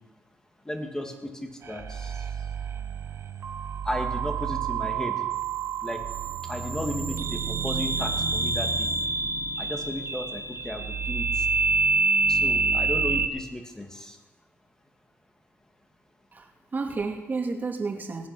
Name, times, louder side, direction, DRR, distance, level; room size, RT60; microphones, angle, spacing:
voice 1, 0.7-2.3 3.8-5.2 5.8-6.0 6.4-8.9 9.6-11.5 12.3-14.2, left 1 dB, 10° left, 4 dB, 2.3 m, -35 dB
sound 1, 1.6-13.3, right 4 dB, 50° right, 1.1 m, -27 dB
voice 2, 16.3-18.3, right 4 dB, 35° right, 3 dB, 2.4 m, -31 dB
18.5 x 8.1 x 6.2 m, 1.1 s
cardioid pair, 80°, 5 cm